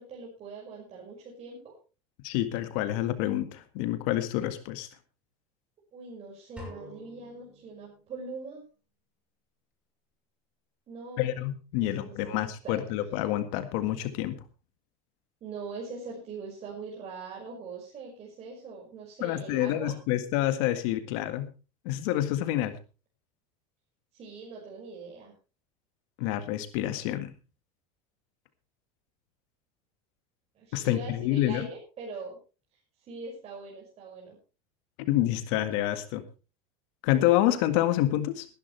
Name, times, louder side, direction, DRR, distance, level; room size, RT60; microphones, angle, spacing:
voice 1, 0.0-1.7 5.9-8.6 10.9-11.3 11.8-12.8 15.4-19.9 24.1-25.3 30.6-32.4 33.1-34.4, right 4 dB, 35° right, -2 dB, 5.7 m, -42 dB
voice 2, 2.2-4.9 11.2-14.4 19.2-21.5 21.9-22.8 26.2-27.3 30.7-31.7 35.1-36.2 37.0-38.5, left 14 dB, 70° left, 10 dB, 1.8 m, -28 dB
sound 1, 6.6-8.6, left 1 dB, 5° right, 7.3 m, -48 dB
19.5 x 11.5 x 3.3 m, 0.33 s
supercardioid pair, 130°, 17 cm